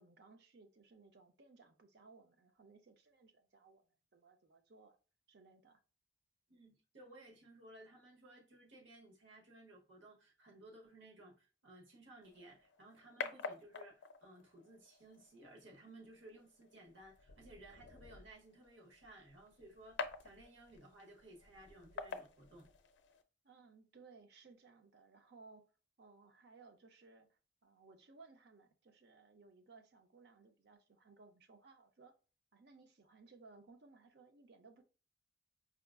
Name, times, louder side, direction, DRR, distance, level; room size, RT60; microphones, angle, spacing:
voice 1, 0.0-3.8 4.1-5.0 5.3-5.8 23.4-25.7 26.0-32.1 32.5-34.8, right 4 dB, 55° right, 0.5 m, -62 dB
voice 2, 6.5-22.7, right 1 dB, 75° right, 1.0 m, -58 dB
sound 1, 12.2-23.2, left 5 dB, 70° left, 0.4 m, -49 dB
4.7 x 2.4 x 2.3 m
head